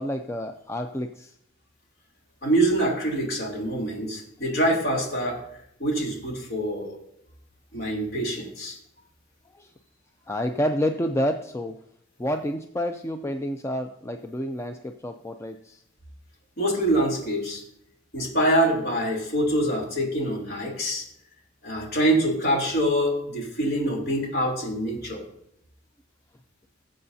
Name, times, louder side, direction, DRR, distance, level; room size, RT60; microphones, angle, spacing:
voice 1, 0.0-1.3 9.5-9.7 10.3-11.8 12.2-15.8, equal, 15° left, 6 dB, 0.4 m, -29 dB
voice 2, 2.4-5.4 5.8-7.0 7.7-8.8 16.6-17.6 18.1-21.0 21.6-25.2, right 1 dB, 55° left, -1 dB, 3.3 m, -25 dB
19.0 x 7.6 x 2.7 m, 0.76 s
head